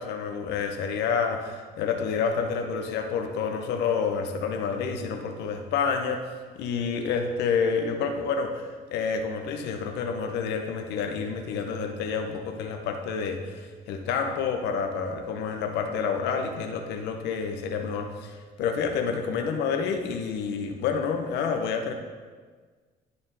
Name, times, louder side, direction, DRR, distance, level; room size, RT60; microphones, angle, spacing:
voice 1, 0.0-6.2 6.6-13.4 13.9-18.3 18.6-21.9, left 6 dB, 85° left, 4 dB, 0.8 m, -28 dB
11.0 x 4.3 x 3.9 m, 1.5 s
cardioid pair, 110°, 17 cm